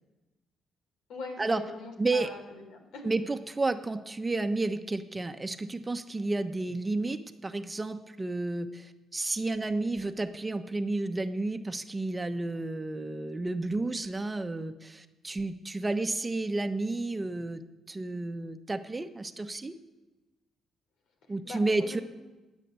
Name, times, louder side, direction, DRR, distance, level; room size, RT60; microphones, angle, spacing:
voice 1, 1.1-3.0 21.4-22.0, left 3 dB, 80° left, 5 dB, 3.6 m, -42 dB
voice 2, 2.0-2.3 3.0-17.6 17.9-19.7 21.3-22.0, right 2 dB, 20° right, 8 dB, 1.1 m, -31 dB
20.5 x 8.3 x 8.3 m, 1.1 s
cardioid pair, 90°, 0 cm